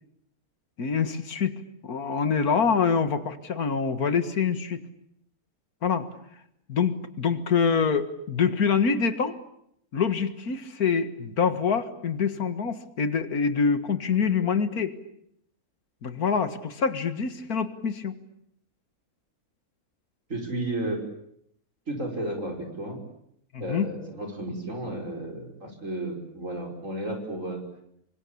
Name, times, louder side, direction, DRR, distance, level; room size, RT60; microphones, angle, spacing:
voice 1, 0.8-1.5 1.8-4.8 5.8-6.1 6.7-9.4 9.9-15.0 16.0-18.1 23.5-23.9, left 6 dB, 85° left, 10 dB, 2.2 m, -25 dB
voice 2, 20.3-21.0 21.9-23.0 23.6-27.6, right 1 dB, 60° right, 3 dB, 5.9 m, -33 dB
28.0 x 24.5 x 8.6 m, 0.73 s
omnidirectional pair, 1.5 m